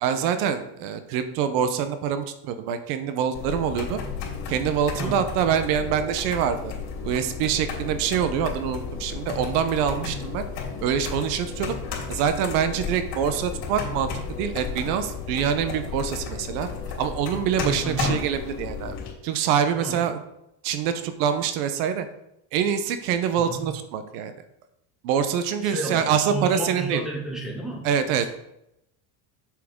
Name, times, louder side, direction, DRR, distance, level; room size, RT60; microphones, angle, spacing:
voice 1, 0.0-4.0 4.5-6.7 7.0-10.4 10.8-11.8 12.1-14.1 14.4-16.7 17.0-18.9 19.2-20.2 20.6-22.1 22.5-24.3 25.0-27.0 27.8-28.3, right 8 dB, 85° right, 9 dB, 0.9 m, -25 dB
sound 1, 3.3-19.1, left 5 dB, 55° left, 3.3 m, -33 dB
voice 2, 23.4-23.7 25.6-27.9 28.2-28.3, right 2 dB, ahead, -4 dB, 3.0 m, -32 dB
7.4 x 7.2 x 3.7 m, 0.85 s
cardioid pair, 125°, 48 cm